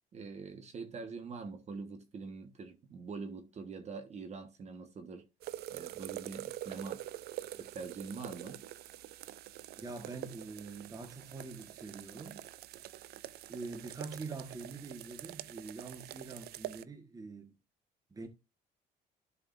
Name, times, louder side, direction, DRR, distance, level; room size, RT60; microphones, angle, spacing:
voice 1, 0.1-5.3 5.7-7.0 7.5-8.7, right 4 dB, 40° right, 1.3 m, -44 dB
sound 1, 5.4-16.8, right 14 dB, 70° right, 0.5 m, -45 dB
voice 2, 9.8-12.5 13.5-17.5 18.1-18.3, right 3 dB, 20° right, 1.3 m, -45 dB
11.5 x 4.9 x 2.5 m
cardioid pair, 110°, 17 cm